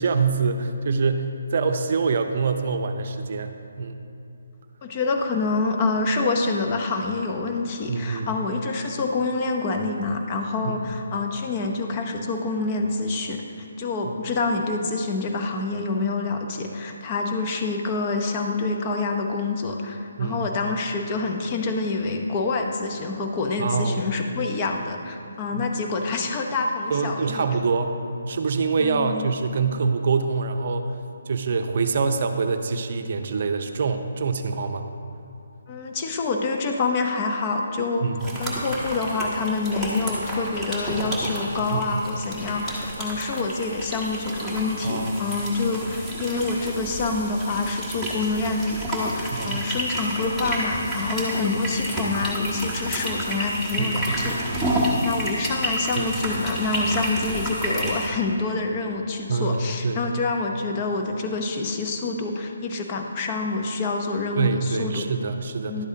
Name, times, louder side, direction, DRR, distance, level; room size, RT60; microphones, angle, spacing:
voice 1, 0.0-4.0 7.9-8.3 10.6-10.8 20.2-20.4 23.6-24.0 25.5-25.6 26.9-28.0 28.3-30.9 31.3-34.9 38.0-38.4 41.7-42.0 44.8-45.3 49.3-49.6 53.8-54.3 56.0-56.1 59.3-60.0 64.4-65.9, right 4 dB, 50° right, 7 dB, 0.6 m, -25 dB
voice 2, 4.8-13.4 13.8-27.4 28.8-29.3 35.7-38.1 38.4-54.6 55.0-65.0 65.7-65.9, left 3 dB, 30° left, 3 dB, 0.8 m, -27 dB
sound 1, 38.2-58.1, right 1 dB, ahead, 1.4 m, -30 dB
11.5 x 8.0 x 2.8 m, 2.8 s
figure-of-eight pair, 150°, 0 cm